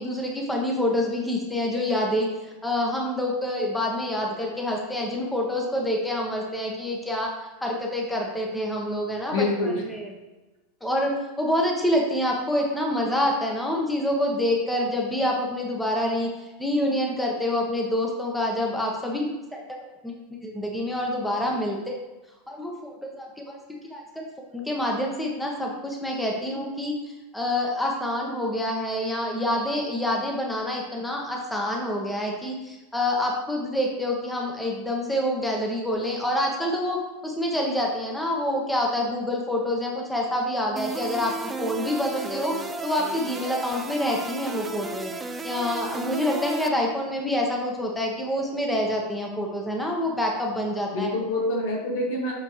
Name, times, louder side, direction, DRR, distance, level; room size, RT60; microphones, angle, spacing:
voice 1, 0.0-10.1 10.8-20.1 20.4-22.0 22.5-24.3 24.5-26.9 27.3-37.0 37.2-42.5 42.8-45.1 45.4-51.1, left 1 dB, 5° left, 0 dB, 1.0 m, -27 dB
voice 2, 9.3-9.8 50.9-52.3, left 2 dB, 70° left, -1 dB, 1.7 m, -26 dB
sound 1, 40.8-46.7, right 3 dB, 15° right, 0.5 m, -34 dB
7.5 x 4.3 x 3.1 m, 1.1 s
hypercardioid pair, 115°, 0 cm